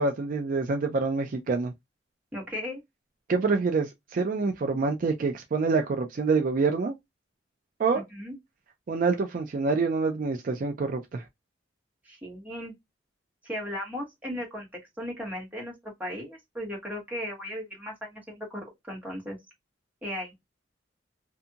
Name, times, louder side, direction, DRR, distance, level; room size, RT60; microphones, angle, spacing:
voice 1, 0.0-1.7 3.3-6.9 7.8-8.0 8.9-11.2, right 4 dB, 45° right, 0.4 m, -26 dB
voice 2, 2.3-2.8 7.9-8.3 12.0-12.7 13.4-14.7 15.0-19.4 20.0-20.3, equal, 10° right, 1.4 m, -36 dB
2.7 x 2.6 x 2.3 m
head